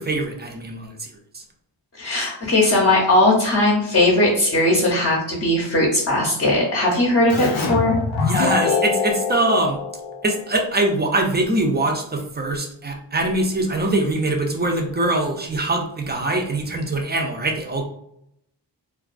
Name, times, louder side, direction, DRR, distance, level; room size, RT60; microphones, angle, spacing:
voice 1, 0.0-1.4 8.2-9.8 10.2-17.9, right 2 dB, 25° right, 2 dB, 0.4 m, -23 dB
voice 2, 1.9-8.0, left 1 dB, 35° left, -4 dB, 0.7 m, -18 dB
Keyboard (musical), 7.3-10.7, left 4 dB, 85° left, 0.6 m, -24 dB
2.3 x 2.2 x 2.4 m, 0.75 s
wide cardioid pair, 80°, 44 cm